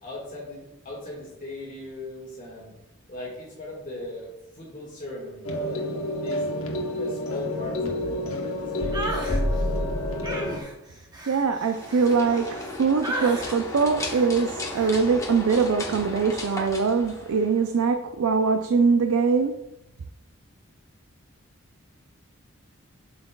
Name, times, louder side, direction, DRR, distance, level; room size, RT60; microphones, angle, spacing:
voice 1, 0.0-2.7 3.1-6.0 6.2-6.4 6.9-9.3, left 1 dB, 40° left, -5 dB, 1.6 m, -39 dB
sound 1, 5.4-10.6, left 1 dB, 75° left, 1.0 m, -28 dB
sound 2, 8.9-9.4 10.2-12.7 13.0-13.6 14.0-14.3 14.7-15.0, right 1 dB, 20° right, 0.8 m, -34 dB
voice 2, 11.3-19.5, right 5 dB, 85° right, 7 dB, 0.4 m, -22 dB
sound 3, 11.6-17.8, left 2 dB, 15° left, 0.9 m, -36 dB
7.8 x 6.4 x 2.2 m, 0.92 s
head